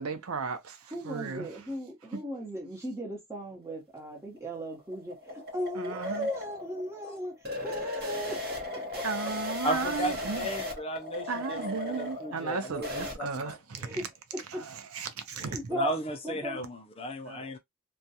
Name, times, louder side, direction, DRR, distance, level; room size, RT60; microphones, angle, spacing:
voice 1, 0.0-1.5 5.7-6.3 9.0-10.5 11.3-14.1 14.5-15.6 16.5-16.7 17.3-17.4, right 5 dB, 80° right, 0.6 m, -35 dB
voice 2, 0.9-7.3 7.6-8.4 8.7-9.5 13.8-14.0 14.3-14.6 15.4-15.9 16.2-16.6, right 1 dB, 15° right, 0.8 m, -37 dB
sound 1, 4.2-13.1, left 2 dB, 45° right, 0.8 m, -37 dB
voice 3, 9.6-13.6 15.4-17.6, equal, 25° left, 0.4 m, -35 dB
2.3 x 2.2 x 2.7 m
head